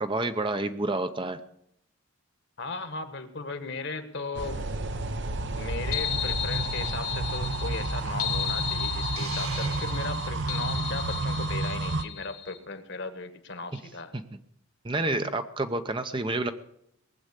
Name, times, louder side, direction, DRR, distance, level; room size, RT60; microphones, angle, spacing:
voice 1, 0.0-1.4 14.1-14.2 14.8-16.5, right 2 dB, 20° right, 9 dB, 0.7 m, -29 dB
voice 2, 2.6-4.6 5.5-14.2, left 3 dB, 50° left, 9 dB, 1.5 m, -37 dB
sound 1, 4.3-12.0, right 2 dB, 55° right, 0.9 m, -31 dB
sound 2, 5.9-12.6, left 11 dB, 80° left, 2.3 m, -34 dB
Hiss, 9.2-10.5, right 4 dB, 75° right, 3.8 m, -41 dB
19.5 x 7.8 x 8.2 m, 0.75 s
head